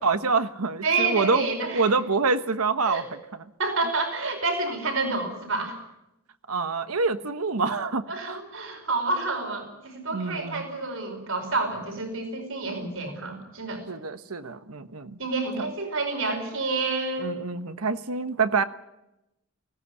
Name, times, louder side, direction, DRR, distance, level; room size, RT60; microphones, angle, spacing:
voice 1, 0.0-1.5 1.7-3.4 6.5-8.4 10.1-10.6 13.9-15.2 15.6-15.7 17.2-18.6, right 4 dB, 80° right, 11 dB, 1.2 m, -26 dB
voice 2, 0.8-1.9 2.9-3.1 3.6-5.8 8.1-13.8 15.2-17.4, right 3 dB, 65° right, 5 dB, 5.0 m, -29 dB
19.5 x 17.0 x 9.8 m, 0.90 s
head